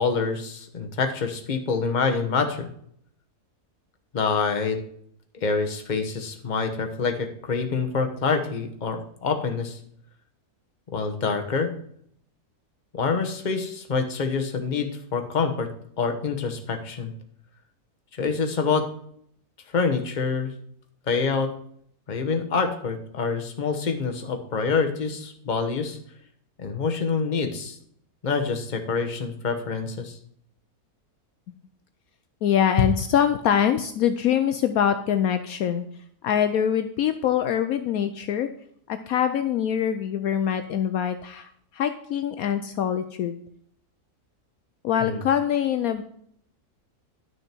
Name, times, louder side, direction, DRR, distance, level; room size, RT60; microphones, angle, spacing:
voice 1, 0.0-2.7 4.1-4.8 5.4-9.8 10.9-11.7 12.9-15.7 16.0-17.1 18.2-18.9 19.7-20.5 21.1-21.5 22.1-26.0 26.6-27.8 28.2-30.2 45.0-45.2, left 5 dB, 35° left, 5 dB, 1.1 m, -26 dB
voice 2, 32.4-35.9 36.2-38.5 38.9-43.4 44.8-46.0, left 9 dB, 70° left, 9 dB, 1.0 m, -24 dB
11.0 x 6.3 x 4.4 m, 0.65 s
omnidirectional pair, 1.7 m